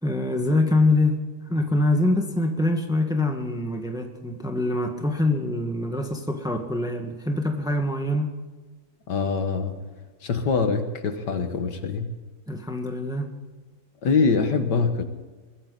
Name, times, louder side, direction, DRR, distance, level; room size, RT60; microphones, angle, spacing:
voice 1, 0.0-1.2 1.5-8.3 12.5-13.3, left 2 dB, ahead, 4 dB, 1.5 m, -24 dB
voice 2, 9.1-9.8 10.2-12.2 14.0-15.0, left 4 dB, 65° left, 7 dB, 1.9 m, -24 dB
22.0 x 15.0 x 4.1 m, 1.3 s
omnidirectional pair, 2.1 m